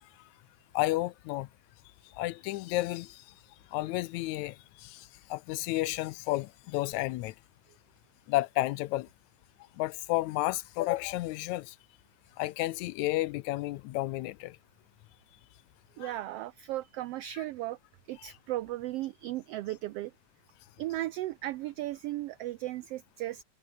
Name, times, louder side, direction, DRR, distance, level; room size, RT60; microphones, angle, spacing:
voice 1, 0.7-1.5 2.2-3.2 3.7-7.3 8.3-9.1 9.8-11.8 12.4-14.6 16.0-16.2, left 18 dB, 85° left, 1.9 m, -32 dB
voice 2, 16.0-17.8 18.1-20.1 20.8-23.4, right 15 dB, 90° right, 1.3 m, -36 dB
omnidirectional pair, 3.4 m